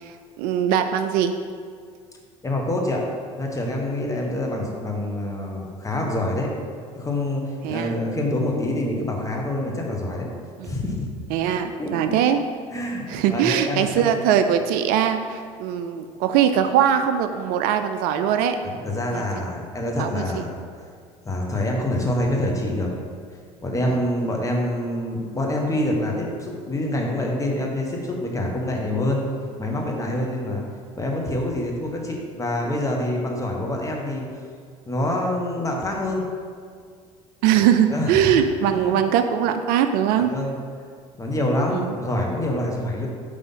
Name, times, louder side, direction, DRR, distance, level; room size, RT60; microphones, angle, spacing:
voice 1, 0.1-1.4 7.6-7.9 10.6-10.7 11.3-12.4 13.1-18.6 19.1-19.2 20.0-20.4 37.4-40.3 41.7-42.0, right 9 dB, 60° right, 8 dB, 0.4 m, -21 dB
voice 2, 2.4-3.0 3.3-6.5 6.9-10.3 10.6-11.1 11.8-12.2 12.7-14.1 18.6-20.5 21.2-22.9 23.6-29.2 29.6-30.6 30.9-34.3 34.9-36.2 37.9-38.4 38.7-39.0 40.2-40.6 41.2-43.1, left 1 dB, 20° left, -1 dB, 1.3 m, -26 dB
5.5 x 3.4 x 5.5 m, 2.1 s
hypercardioid pair, 70°, 17 cm